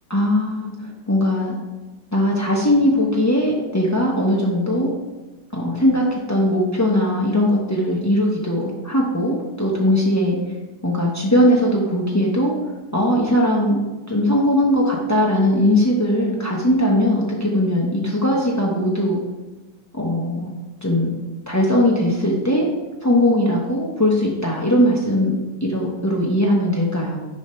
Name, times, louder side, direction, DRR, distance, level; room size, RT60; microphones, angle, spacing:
voice 1, 0.1-1.6 2.1-4.9 5.5-10.4 10.8-12.5 12.9-13.8 14.1-19.2 19.9-20.5 20.8-21.1 21.5-22.7 23.0-27.2, left 1 dB, 20° left, -3 dB, 0.4 m, -19 dB
10.5 x 3.6 x 5.4 m, 1.2 s
omnidirectional pair, 1.9 m